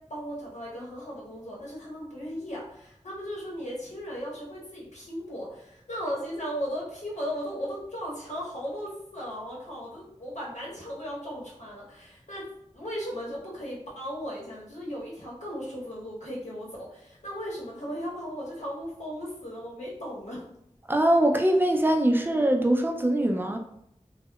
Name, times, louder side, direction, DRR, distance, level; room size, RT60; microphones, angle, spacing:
voice 1, 0.1-12.4 12.7-20.4, equal, 90° left, -5 dB, 0.9 m, -36 dB
voice 2, 20.9-23.6, right 1 dB, 20° right, 3 dB, 0.3 m, -22 dB
2.7 x 2.1 x 2.2 m, 0.76 s
wide cardioid pair, 50°, 12 cm